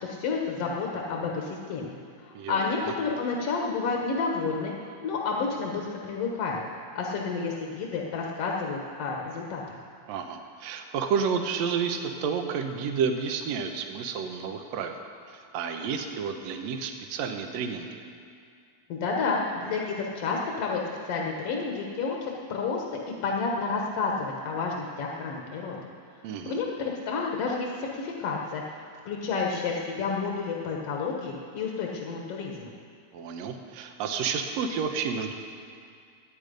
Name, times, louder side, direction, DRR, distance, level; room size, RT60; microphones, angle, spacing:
voice 1, 0.0-1.9 2.2-4.7 5.0-6.6 6.9-9.8 18.9-20.8 21.1-25.8 26.5-28.6 29.1-32.7, left 4 dB, 60° left, -1 dB, 2.1 m, -30 dB
voice 2, 2.4-2.9 10.1-15.0 15.3-18.0 26.2-26.6 33.1-35.3, right 6 dB, 70° right, 5 dB, 2.1 m, -31 dB
20.5 x 8.9 x 5.2 m, 2.3 s
omnidirectional pair, 3.3 m